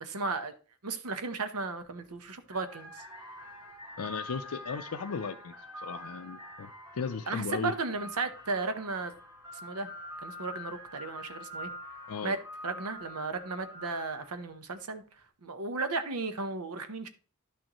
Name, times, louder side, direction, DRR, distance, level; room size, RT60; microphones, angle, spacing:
voice 1, 0.0-0.5 0.8-3.0 7.3-9.1 9.6-9.9 10.2-11.7 12.2-12.4 12.6-15.0 15.4-17.1, right 3 dB, 90° right, 1.0 m, -35 dB
sound 1, 1.8-2.0 2.4-14.5, left 1 dB, 15° right, 1.7 m, -46 dB
voice 2, 4.0-5.5 5.8-7.7 12.1-12.4, left 5 dB, 85° left, 0.5 m, -36 dB
11.0 x 6.4 x 3.0 m
head